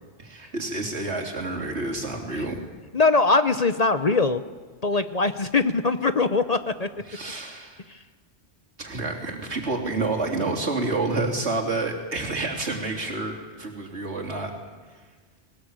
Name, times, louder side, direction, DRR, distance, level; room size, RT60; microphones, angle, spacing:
voice 1, 0.2-2.6 7.1-7.8 8.8-14.5, right 3 dB, 75° right, 0 dB, 3.6 m, -29 dB
voice 2, 2.9-4.4 4.8-6.9 7.9-8.0, left 3 dB, 40° left, 11 dB, 0.8 m, -22 dB
21.0 x 19.5 x 8.8 m, 1.5 s
omnidirectional pair, 1.1 m